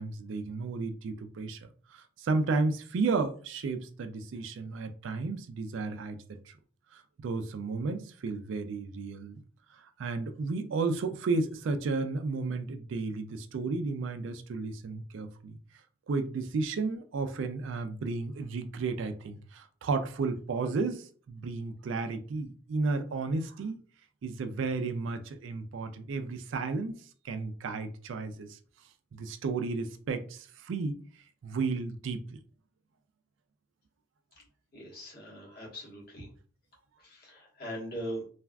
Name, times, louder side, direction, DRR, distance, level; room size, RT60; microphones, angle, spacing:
voice 1, 0.0-1.6 1.9-6.6 6.9-9.4 9.7-15.6 16.1-23.8 24.2-26.9 27.2-28.6 29.1-31.0 31.4-32.4, right 3 dB, 65° right, 0.3 m, -33 dB
voice 2, 34.7-36.3 37.0-38.2, equal, 50° left, 1.3 m, -40 dB
3.3 x 2.3 x 2.3 m
head